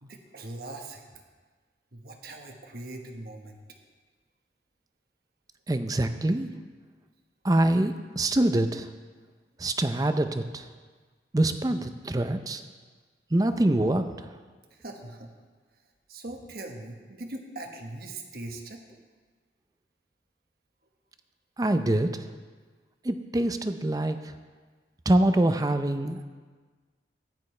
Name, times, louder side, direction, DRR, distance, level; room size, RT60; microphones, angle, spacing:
voice 1, 0.0-1.0 1.9-3.6 14.7-15.3 15.7-15.8 16.1-18.8, right 2 dB, 55° right, 3 dB, 1.2 m, -41 dB
voice 2, 5.7-6.5 7.4-8.9 9.6-10.7 11.3-12.6 13.3-14.3 21.6-22.3 23.0-24.3 25.1-26.2, right 1 dB, 20° right, 9 dB, 0.5 m, -25 dB
15.5 x 10.5 x 3.3 m, 1.4 s
head